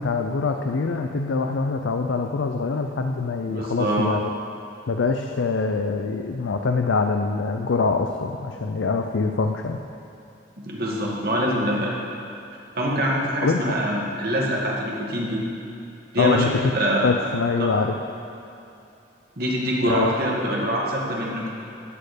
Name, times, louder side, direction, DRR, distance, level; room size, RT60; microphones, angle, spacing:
voice 1, 0.0-4.3 4.9-9.8 13.4-13.8 16.2-16.6 17.0-18.0 19.9-20.2, left 4 dB, 80° left, 5 dB, 0.5 m, -24 dB
voice 2, 3.5-4.1 10.6-12.0 12.8-15.4 16.1-16.5 16.7-17.1 17.6-17.7 19.4-21.5, equal, 50° right, -3 dB, 1.8 m, -24 dB
12.5 x 4.4 x 8.3 m, 2.7 s
head